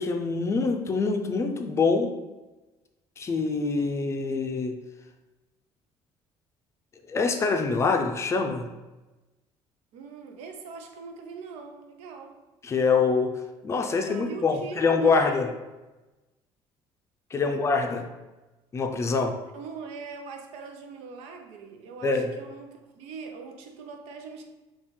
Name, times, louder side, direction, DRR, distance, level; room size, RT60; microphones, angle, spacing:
voice 1, 0.0-2.1 3.2-4.8 7.1-8.7 12.6-13.3 13.6-15.5 17.3-18.1 18.7-19.4 22.0-22.3, left 4 dB, 25° left, 4 dB, 0.4 m, -25 dB
voice 2, 9.9-12.4 13.9-15.4 17.5-17.6 19.5-24.4, right 5 dB, 85° right, 5 dB, 0.6 m, -41 dB
5.4 x 2.4 x 3.2 m, 1.1 s
cardioid pair, 130°, 10 cm